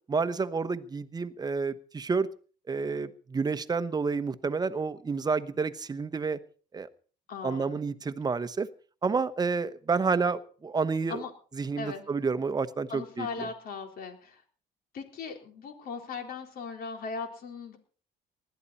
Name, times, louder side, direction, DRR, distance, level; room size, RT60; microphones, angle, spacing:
voice 1, 0.1-2.3 2.7-6.4 6.7-6.9 7.4-8.7 9.0-11.2 11.5-13.5, right 4 dB, 25° right, 12 dB, 1.1 m, -29 dB
voice 2, 7.3-7.8 11.1-11.3 11.8-12.1 12.9-14.4 14.9-17.8, left 5 dB, 60° left, 4 dB, 4.1 m, -38 dB
19.5 x 13.0 x 4.3 m, 0.40 s
cardioid pair, 110°, 17 cm